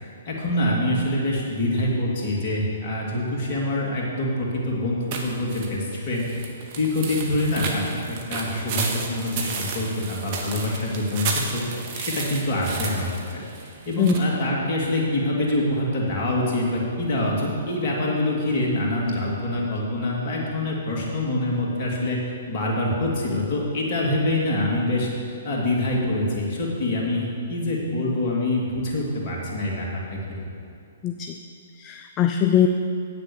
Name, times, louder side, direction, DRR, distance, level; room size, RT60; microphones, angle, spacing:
voice 1, 0.3-11.6 11.9-13.4 13.9-22.2 22.5-25.1 25.4-30.5, left 1 dB, 45° left, -3 dB, 2.6 m, -25 dB
sound 1, 5.1-14.2, right 4 dB, 45° right, 1.3 m, -33 dB
voice 2, 31.0-31.4 31.8-32.7, left 10 dB, 30° left, 6 dB, 0.4 m, -21 dB
8.7 x 6.8 x 6.9 m, 2.5 s
figure-of-eight pair, 120°, 0 cm